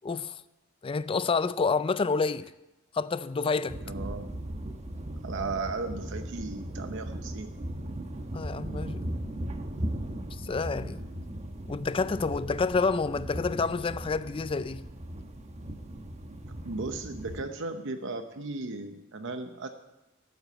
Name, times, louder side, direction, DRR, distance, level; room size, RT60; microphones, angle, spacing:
voice 1, 0.0-0.4 0.8-2.5 2.9-3.8 8.3-9.1 10.4-11.0 11.7-14.9, left 4 dB, 25° left, 0.4 m, -28 dB
sound 1, 3.7-17.4, right 1 dB, 35° right, 1.0 m, -38 dB
voice 2, 3.9-4.4 5.2-7.5 16.6-19.7, right 3 dB, 65° right, 0.8 m, -36 dB
13.5 x 7.9 x 7.9 m
head